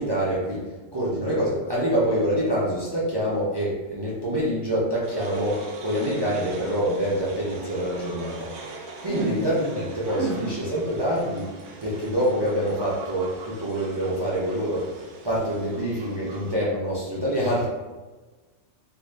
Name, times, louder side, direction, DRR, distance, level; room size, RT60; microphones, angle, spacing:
voice 1, 0.0-8.5 9.0-11.5 11.8-14.9 15.2-17.7, equal, 40° right, -8 dB, 0.4 m, -26 dB
sound 1, 5.0-16.5, right 3 dB, 65° right, 0.8 m, -41 dB
voice 2, 10.2-10.5, right 5 dB, 85° right, 2 dB, 1.0 m, -29 dB
2.7 x 2.5 x 3.2 m, 1.3 s
omnidirectional pair, 1.3 m